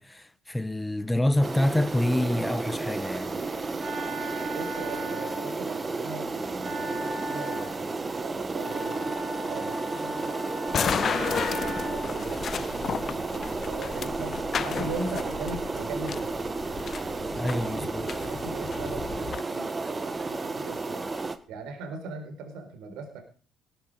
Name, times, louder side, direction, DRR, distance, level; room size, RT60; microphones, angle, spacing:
voice 1, 0.0-3.4 17.4-18.1, left 1 dB, 10° left, 1.1 m, -27 dB
sound 1, 1.4-21.4, right 3 dB, 25° right, 1.7 m, -33 dB
Wind instrument woodwind instrument, 3.2-12.3, right 1 dB, 50° right, 3.3 m, -37 dB
voice 2, 4.5-16.4 17.4-21.1 21.5-23.2, right 3 dB, 65° right, 4.3 m, -40 dB
sound 2, 10.7-19.4, left 7 dB, 45° left, 0.6 m, -33 dB
18.5 x 9.8 x 4.9 m
hypercardioid pair, 55°, 0 cm